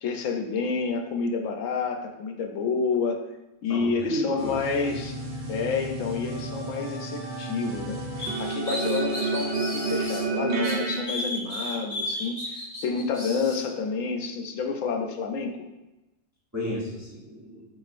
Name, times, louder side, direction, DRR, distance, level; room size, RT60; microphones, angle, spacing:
voice 1, 0.0-3.2 3.6-5.2 5.5-8.0 8.4-15.6, left 5 dB, 80° left, 3 dB, 1.0 m, -29 dB
voice 2, 3.7-4.6 16.5-17.6, equal, 15° right, -5 dB, 0.6 m, -32 dB
sound 1, 4.4-11.0, right 3 dB, 60° right, 1.1 m, -31 dB
sound 2, 8.2-10.2 10.6-13.6, left 1 dB, 30° left, 1.0 m, -34 dB
4.9 x 4.2 x 2.5 m, 1.0 s
omnidirectional pair, 1.3 m